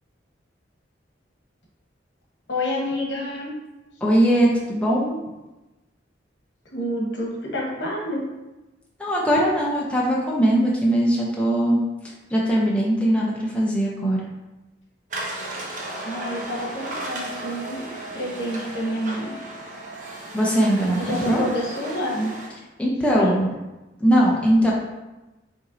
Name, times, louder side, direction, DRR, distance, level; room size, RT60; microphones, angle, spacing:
voice 1, 2.5-3.5 6.6-8.2 16.0-19.3 21.0-22.3 23.1-23.3, equal, 70° left, -2 dB, 1.1 m, -28 dB
voice 2, 4.0-5.2 9.0-11.8 12.3-14.2 20.3-21.4 22.8-23.5 24.0-24.7, equal, 5° left, -4 dB, 0.5 m, -20 dB
sound 1, 15.1-22.5, right 1 dB, 45° right, 0.7 m, -35 dB
5.2 x 3.0 x 2.6 m, 1.1 s
head